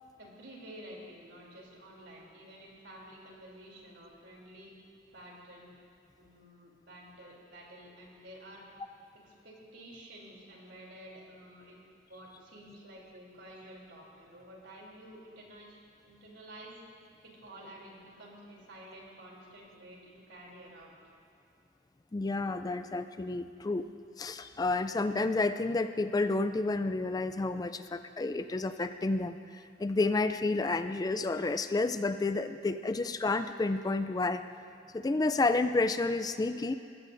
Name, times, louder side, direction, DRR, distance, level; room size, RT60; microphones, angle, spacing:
voice 1, 0.2-4.7 5.1-5.7 6.2-8.6 9.2-15.8 16.0-16.8 17.2-20.9, right 1 dB, 85° right, -3 dB, 3.1 m, -51 dB
voice 2, 22.1-23.9 24.2-34.4 34.9-36.7, left 3 dB, 20° left, 10 dB, 0.3 m, -30 dB
20.5 x 14.5 x 2.6 m, 2.5 s
head